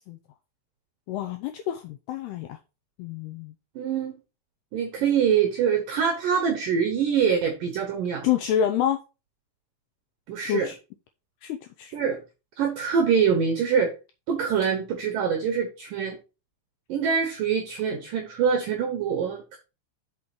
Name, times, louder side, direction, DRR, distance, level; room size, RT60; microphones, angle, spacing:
voice 1, 1.1-2.6 3.0-3.5 8.2-9.0 10.4-10.8 11.4-12.0, left 10 dB, 90° left, 2.3 m, -27 dB
voice 2, 3.8-4.2 4.7-8.3 10.3-10.7 11.9-12.2 12.6-13.9 14.3-16.2 16.9-19.6, right 7 dB, 80° right, 1.9 m, -24 dB
6.0 x 5.5 x 4.9 m
omnidirectional pair, 5.4 m